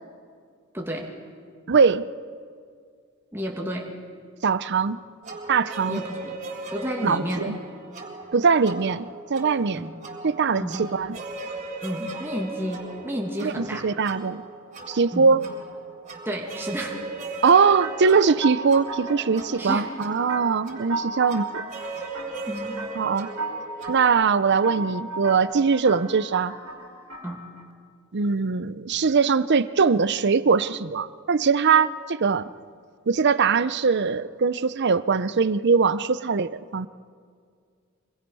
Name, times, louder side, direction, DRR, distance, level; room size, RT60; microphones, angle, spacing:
voice 1, 0.7-1.1 3.3-3.9 5.9-6.4 6.7-7.5 9.7-10.0 10.5-10.8 11.8-13.9 15.1-15.3 16.3-17.0 19.6-19.9 22.5-22.8 27.2-27.4, equal, 10° right, -1 dB, 2.0 m, -31 dB
voice 2, 1.7-2.1 4.4-5.0 5.5-6.0 7.0-7.6 8.3-9.9 10.2-11.2 13.4-14.4 14.9-15.4 17.4-21.5 22.9-23.3 23.9-26.6 28.1-32.5 33.1-36.9, right 5 dB, 55° right, 15 dB, 0.6 m, -21 dB
sound 1, 5.2-24.1, right 2 dB, 35° right, 3.7 m, -38 dB
sound 2, 17.8-27.7, right 3 dB, 75° right, 3.1 m, -36 dB
25.5 x 21.0 x 5.6 m, 2.1 s
head